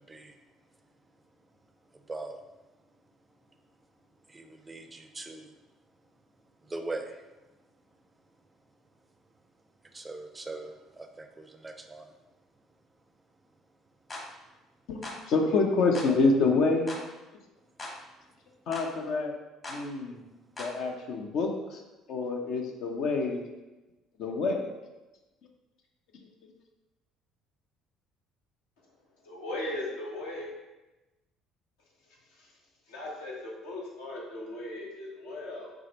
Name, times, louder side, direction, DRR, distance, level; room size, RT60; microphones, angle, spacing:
voice 1, 2.1-2.4 4.3-5.5 6.7-7.1 9.9-12.1, right 2 dB, 20° right, 6 dB, 0.5 m, -40 dB
sound 1, 14.1-14.3 15.0-15.2 15.9-16.1 16.9-17.1 17.8-18.0 18.7-18.9 19.6-19.8 20.6-20.8, left 1 dB, 35° left, 1.1 m, -39 dB
voice 2, 14.9-17.0 18.7-19.3 19.7-20.2 20.6-21.8 22.1-23.5 24.2-24.7 26.2-26.3, left 3 dB, 60° left, 2 dB, 0.6 m, -27 dB
voice 3, 29.2-30.5 32.3-32.5 32.9-35.7, left 1 dB, 75° left, -4 dB, 1.0 m, -38 dB
4.8 x 3.2 x 2.9 m, 1.1 s
hypercardioid pair, 55°, 0 cm